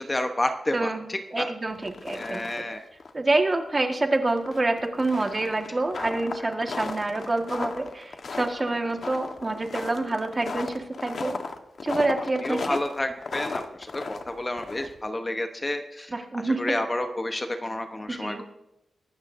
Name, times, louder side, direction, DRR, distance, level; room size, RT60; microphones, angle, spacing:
voice 1, 0.0-1.5 2.1-2.8 12.4-13.6 13.9-16.1 16.4-18.4, left 1 dB, 20° left, 6 dB, 0.9 m, -30 dB
voice 2, 0.7-1.1 1.3-2.6 3.1-11.4 11.8-12.8 16.1-16.6 18.1-18.4, right 2 dB, 25° right, 4 dB, 1.5 m, -27 dB
sound 1, 1.7-2.7 3.0-3.1 3.5-3.6 4.4-15.1, left 4 dB, 55° left, 1.2 m, -35 dB
23.5 x 12.5 x 2.6 m, 0.90 s
wide cardioid pair, 120°, 0 cm